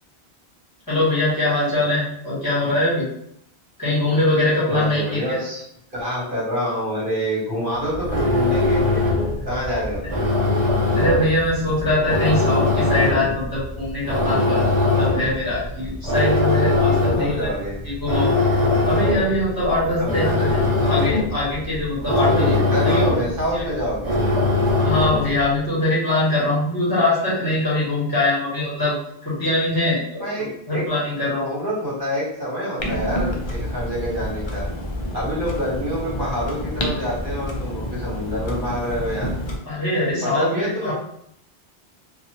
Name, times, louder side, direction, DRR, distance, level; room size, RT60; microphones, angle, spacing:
voice 1, 0.9-3.1 3.8-5.4 10.9-14.6 14.9-17.5 17.8-18.3 18.8-22.4 22.8-23.0 23.5-23.6 24.8-28.9 29.2-31.4 39.7-40.9, left 1 dB, 20° left, -9 dB, 1.3 m, -22 dB
voice 2, 4.7-5.6 5.9-9.0 9.4-10.1 17.1-17.7 20.0-20.5 22.1-24.2 30.2-30.8 31.3-34.6 35.1-39.3 40.2-40.9, equal, 55° right, -7 dB, 1.5 m, -26 dB
sound 1, 7.9-25.4, left 2 dB, 35° right, 1.1 m, -21 dB
Clock, 32.8-39.6, left 1 dB, 50° left, 0.3 m, -28 dB
2.7 x 2.5 x 2.8 m, 0.74 s
omnidirectional pair, 1.1 m